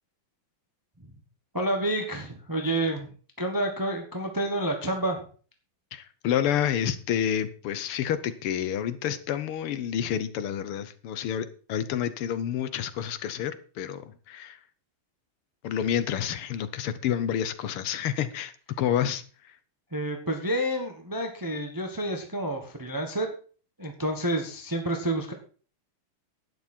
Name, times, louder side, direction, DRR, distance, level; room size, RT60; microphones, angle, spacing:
voice 1, 1.5-3.1 3.4-5.2 19.9-23.3 23.8-25.3, right 1 dB, 10° right, 4 dB, 1.1 m, -29 dB
voice 2, 5.9-14.6 15.6-19.6, left 9 dB, 85° left, 13 dB, 1.8 m, -29 dB
11.5 x 9.5 x 4.4 m, 0.40 s
omnidirectional pair, 2.4 m